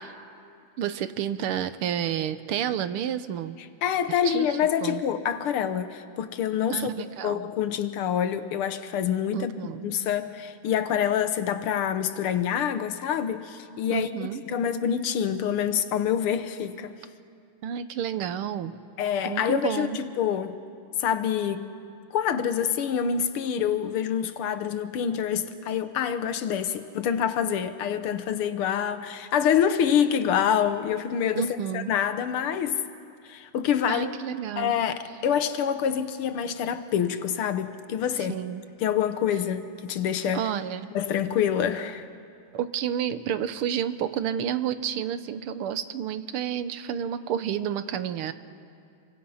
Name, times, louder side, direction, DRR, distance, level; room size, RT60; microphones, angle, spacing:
voice 1, 0.8-3.6 4.3-4.5 4.8-5.0 6.7-7.5 9.3-9.9 13.9-14.4 17.6-18.8 19.2-20.0 31.4-31.9 33.9-34.8 38.3-38.6 40.3-40.9 42.5-48.3, right 9 dB, 85° right, 1.8 m, -30 dB
voice 2, 3.8-6.9 7.2-9.5 9.8-14.1 14.5-16.9 19.0-20.6 21.0-21.7 22.1-32.8 33.3-34.1 34.6-38.3 38.8-40.4 41.0-42.0, left 8 dB, 80° left, 1.9 m, -26 dB
27.5 x 24.0 x 5.7 m
omnidirectional pair, 2.4 m